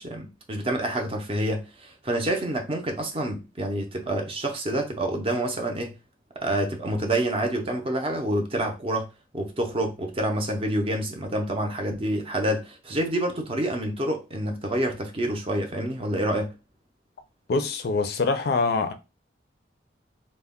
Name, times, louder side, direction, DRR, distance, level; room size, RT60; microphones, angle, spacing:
voice 1, 0.0-6.0 6.4-9.1 9.3-16.5, right 1 dB, 30° right, 0.5 m, -27 dB
voice 2, 17.5-18.9, left 3 dB, 60° left, 0.4 m, -24 dB
2.2 x 2.1 x 3.5 m
head